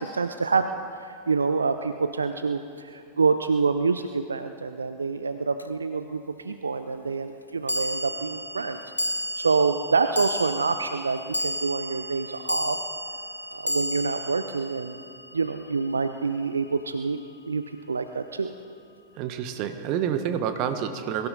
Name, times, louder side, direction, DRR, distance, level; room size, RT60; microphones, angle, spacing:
voice 1, 0.0-8.8 9.3-12.9 13.5-15.0 15.3-17.2 17.5-18.5, right 4 dB, 75° right, 9 dB, 0.5 m, -27 dB
sound 1, 5.6-5.7 7.7-16.1, left 1 dB, 85° left, 0.6 m, -32 dB
voice 2, 19.2-21.3, right 8 dB, 40° right, 8 dB, 1.2 m, -28 dB
22.5 x 15.0 x 4.1 m, 2.3 s
figure-of-eight pair, 90°, 0 cm